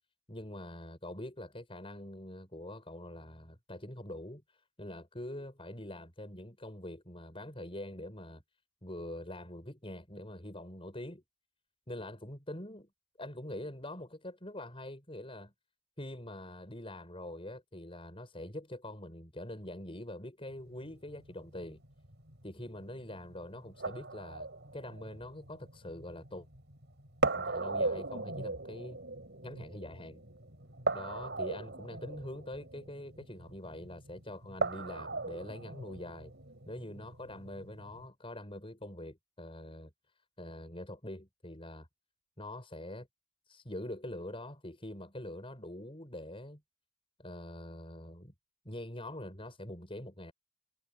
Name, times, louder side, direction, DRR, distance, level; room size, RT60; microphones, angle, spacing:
voice 1, 0.3-4.4 4.8-8.4 8.8-11.2 11.9-12.9 13.2-15.5 16.0-21.8 22.4-26.5 27.3-29.0 29.4-30.2 30.9-36.3 36.7-39.9 40.4-41.9 42.4-43.1 43.5-46.6 47.2-48.3 48.6-50.3, left 1 dB, 25° left, 7.5 m, -44 dB
sound 1, 20.5-38.1, right 3 dB, 50° right, 7.5 m, -39 dB
head